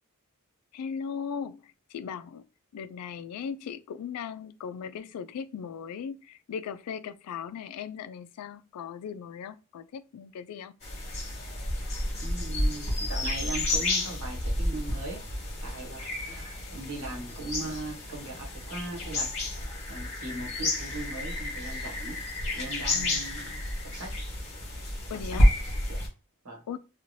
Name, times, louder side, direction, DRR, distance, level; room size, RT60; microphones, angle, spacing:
voice 1, 0.7-2.4 2.7-10.7 22.9-23.3 25.1-25.5 26.7-26.8, left 7 dB, 90° left, 0.3 m, -38 dB
sound 1, 10.8-26.1, left 1 dB, 30° left, 1.3 m, -30 dB
voice 2, 12.2-15.2 15.6-19.3 19.9-22.2 22.5-24.1 25.9-26.0 26.4-26.6, right 2 dB, 75° right, 1.1 m, -39 dB
3.0 x 2.4 x 2.7 m
head